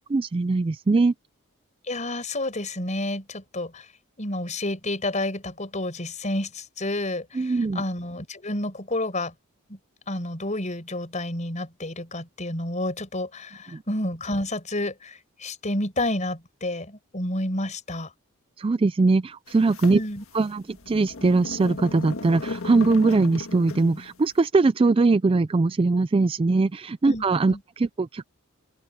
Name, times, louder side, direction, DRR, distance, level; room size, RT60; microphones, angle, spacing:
voice 1, 0.1-1.1 7.4-7.8 13.7-13.8 18.6-20.0 20.3-28.3, right 3 dB, 25° right, 0.3 m, -21 dB
voice 2, 1.8-3.9 4.2-9.3 9.7-9.8 10.1-18.1 19.9-20.2 27.0-27.6, left 1 dB, 35° left, 5.7 m, -30 dB
sound 1, 19.5-24.1, left 3 dB, 65° left, 1.8 m, -36 dB
open air
head